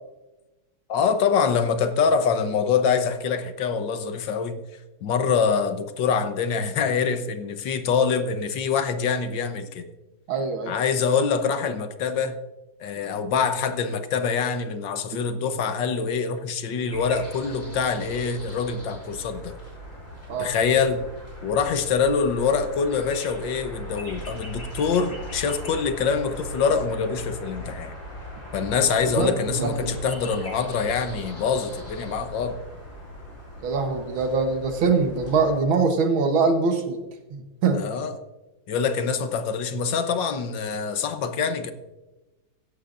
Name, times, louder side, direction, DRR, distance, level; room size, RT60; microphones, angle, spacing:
voice 1, 0.9-4.6 5.0-9.9 10.7-12.4 12.8-19.5 20.4-21.0 21.4-27.9 28.5-32.6 37.7-38.1 38.7-41.7, left 6 dB, 70° left, 8 dB, 1.6 m, -25 dB
voice 2, 10.3-10.7 20.3-20.5 29.1-29.9 33.6-37.0 37.3-37.8, right 4 dB, 80° right, 5 dB, 2.0 m, -23 dB
sound 1, 16.9-35.6, equal, 30° left, 5.0 m, -39 dB
16.0 x 11.5 x 2.6 m, 1.1 s
omnidirectional pair, 2.2 m